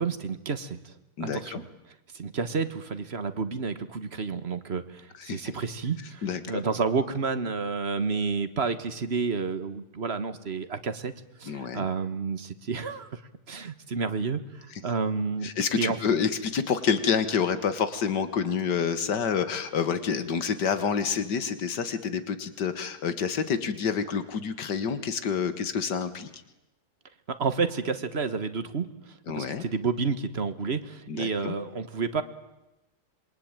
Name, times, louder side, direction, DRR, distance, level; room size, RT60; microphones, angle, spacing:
voice 1, 0.0-1.7 2.1-11.1 11.4-13.2 13.5-14.4 14.8-15.5 15.8-16.0 27.3-28.9 29.3-32.2, right 5 dB, 40° right, 11 dB, 1.6 m, -30 dB
voice 2, 1.2-1.6 5.2-5.4 6.2-6.6 11.5-11.9 15.4-26.3 29.3-29.6 31.1-31.6, left 6 dB, 90° left, 12 dB, 2.1 m, -28 dB
27.0 x 23.0 x 9.0 m, 0.96 s
omnidirectional pair, 1.8 m